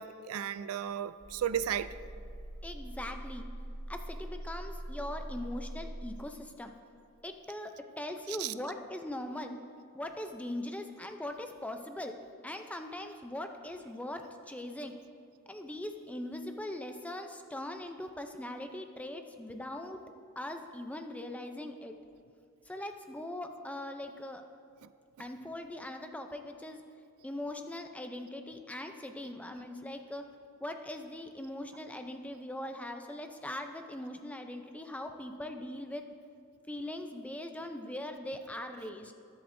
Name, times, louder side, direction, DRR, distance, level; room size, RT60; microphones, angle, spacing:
voice 1, 0.0-1.9 8.4-8.5 24.8-24.9, right 9 dB, 90° right, 14 dB, 0.4 m, -34 dB
sound 1, 1.2-6.2, right 1 dB, 60° right, 2.0 m, -43 dB
voice 2, 2.6-3.5 3.9-6.7 7.2-9.5 9.9-12.2 12.4-14.9 15.5-20.0 20.4-21.9 22.7-24.4 25.2-26.8 27.2-30.2 30.6-36.1 36.7-39.1, left 1 dB, 5° left, 5 dB, 0.5 m, -41 dB
20.5 x 7.8 x 2.6 m, 2.3 s
head